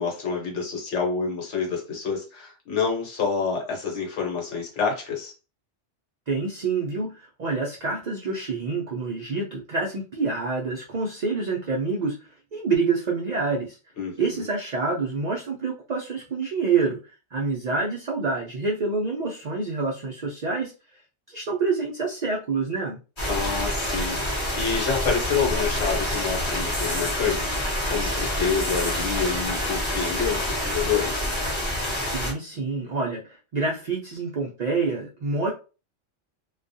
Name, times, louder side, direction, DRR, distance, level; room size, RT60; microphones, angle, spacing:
voice 1, 0.0-5.3 14.0-14.4 23.3-31.3, left 6 dB, 65° left, 0 dB, 1.1 m, -28 dB
voice 2, 6.3-12.2 12.5-13.8 14.2-17.0 17.3-20.7 21.3-23.0 31.9-35.5, right 4 dB, 75° right, -1 dB, 0.4 m, -27 dB
sound 1, 23.2-32.3, left 1 dB, 25° left, 0.8 m, -27 dB
2.3 x 2.2 x 2.6 m, 0.33 s
omnidirectional pair, 1.3 m